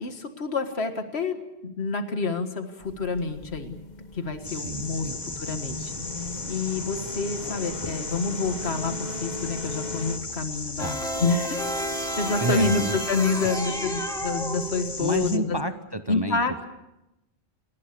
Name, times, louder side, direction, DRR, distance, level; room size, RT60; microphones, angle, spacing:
voice 1, 0.0-3.8 4.1-5.9 6.5-11.6 12.2-15.6 16.1-16.7, left 4 dB, 75° left, 7 dB, 2.0 m, -28 dB
sound 1, 2.8-10.2, left 3 dB, 45° left, 1.5 m, -38 dB
sound 2, 4.4-15.4, left 2 dB, 25° left, 1.3 m, -36 dB
voice 2, 4.5-6.1 10.8-11.0 12.4-13.0 15.0-16.4, right 2 dB, 25° right, 8 dB, 0.9 m, -31 dB
sound 3, 10.8-15.1, equal, 5° left, 2.8 m, -31 dB
29.5 x 18.5 x 6.9 m, 0.91 s
omnidirectional pair, 1.1 m